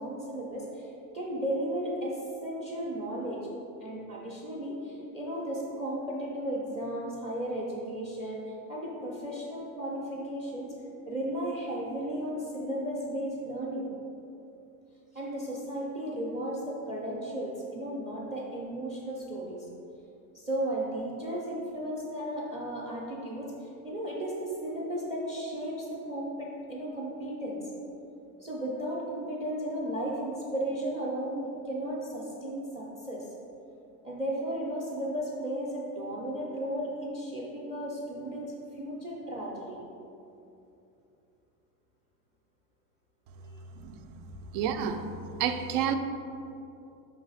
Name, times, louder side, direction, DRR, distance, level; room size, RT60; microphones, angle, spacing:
voice 1, 0.0-3.5 3.8-8.4 8.7-10.7 11.1-13.9 15.1-19.7 20.3-27.7 28.4-33.2 34.0-39.8 43.4-43.6, right 1 dB, 10° right, -4 dB, 0.6 m, -35 dB
voice 2, 44.5-45.0 45.4-46.0, right 8 dB, 70° right, 8 dB, 0.6 m, -28 dB
5.7 x 4.0 x 5.4 m, 2.8 s
cardioid pair, 170°, 39 cm